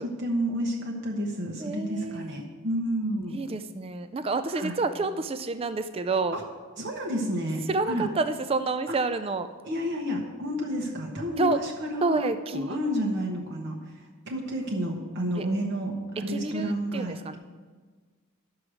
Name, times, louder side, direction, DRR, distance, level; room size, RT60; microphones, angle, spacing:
voice 1, 0.0-3.4 4.5-4.8 6.3-6.4 6.8-8.1 8.9-9.0 9.6-12.3 12.5-17.4, equal, 55° right, 0 dB, 1.1 m, -30 dB
voice 2, 1.6-2.4 3.3-6.4 7.7-9.5 11.4-11.6 12.0-12.8 15.4-15.5 16.3-17.3, right 3 dB, 25° right, 10 dB, 0.3 m, -29 dB
12.5 x 4.9 x 6.2 m, 1.4 s
head